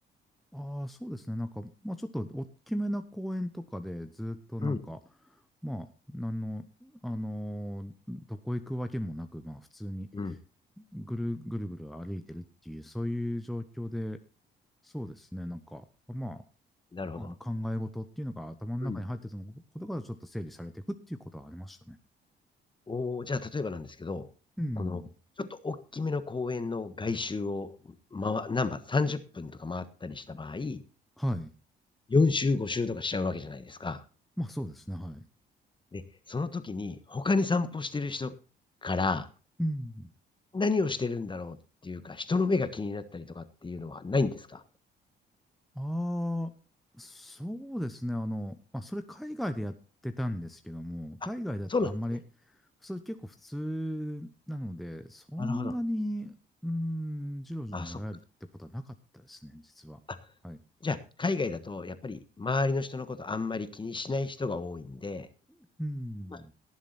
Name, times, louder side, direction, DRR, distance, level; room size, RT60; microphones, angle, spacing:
voice 1, 0.5-10.4 10.8-14.2 14.8-16.4 17.2-22.0 24.6-25.1 31.2-31.5 34.4-35.2 39.6-40.1 45.7-46.5 46.9-49.7 50.0-52.2 52.5-52.6 52.8-56.3 56.6-58.2 58.6-60.0 60.4-60.6 65.6-66.5, equal, ahead, 8 dB, 0.9 m, -36 dB
voice 2, 16.9-17.3 18.8-19.0 22.9-24.3 24.8-25.0 25.4-30.8 32.1-34.0 35.9-36.0 36.3-38.3 38.8-39.3 40.5-41.6 41.8-44.6 51.7-51.9 55.4-55.7 57.7-58.0 60.1-60.2 60.8-65.3 66.3-66.4, left 3 dB, 25° left, 12 dB, 1.4 m, -31 dB
18.0 x 7.4 x 4.2 m, 0.35 s
cardioid pair, 90°, 20 cm